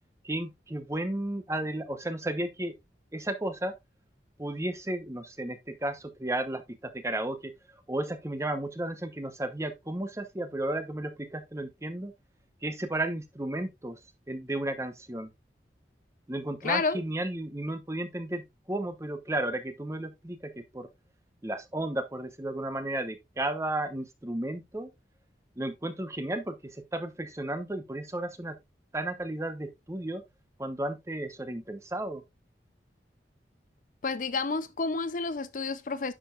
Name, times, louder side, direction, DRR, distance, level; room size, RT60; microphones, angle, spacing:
voice 1, 0.2-2.7 3.1-3.8 4.4-12.1 12.6-14.0 14.3-15.3 16.3-20.9 21.4-24.9 25.6-28.6 28.9-30.2 30.6-32.2, right 1 dB, 15° right, 0.9 m, -33 dB
voice 2, 16.6-17.0 34.0-36.1, left 4 dB, 45° left, 0.5 m, -30 dB
9.9 x 6.8 x 2.4 m
head